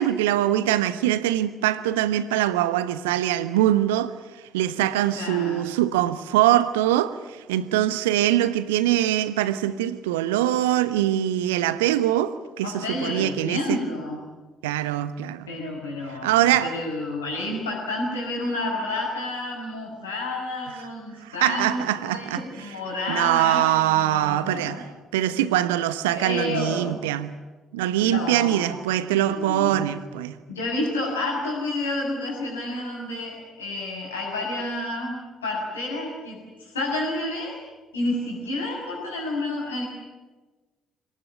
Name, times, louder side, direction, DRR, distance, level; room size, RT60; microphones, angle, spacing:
voice 1, 0.0-4.1 4.5-13.8 14.6-15.5 16.2-16.7 21.2-22.4 23.1-24.9 25.1-27.4 27.7-30.4, right 13 dB, 70° right, 1.1 m, -23 dB
voice 2, 5.1-5.7 12.6-14.2 15.5-24.8 26.1-27.0 28.0-28.7 29.2-29.8 30.5-37.6 37.9-39.9, left 2 dB, 80° left, 6.9 m, -30 dB
26.5 x 19.0 x 9.6 m
figure-of-eight pair, 50°, 0 cm